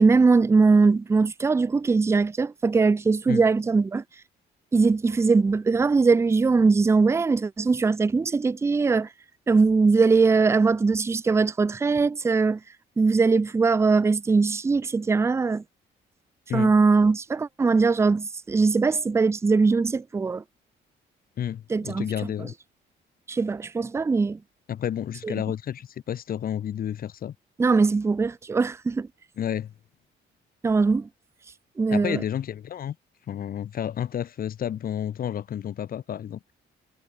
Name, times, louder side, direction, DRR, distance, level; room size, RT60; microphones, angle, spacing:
voice 1, 0.0-4.0 4.7-9.1 9.5-12.6 13.0-15.6 16.5-20.4 21.7-22.1 23.3-24.4 25.2-25.3 27.6-29.1 30.6-31.1 31.8-32.2, right 4 dB, 15° right, 0.3 m, -21 dB
voice 2, 21.4-22.5 24.7-27.3 29.4-29.7 31.9-33.0 33.3-36.4, left 9 dB, 50° left, 0.6 m, -30 dB
cardioid pair, 90°, 20 cm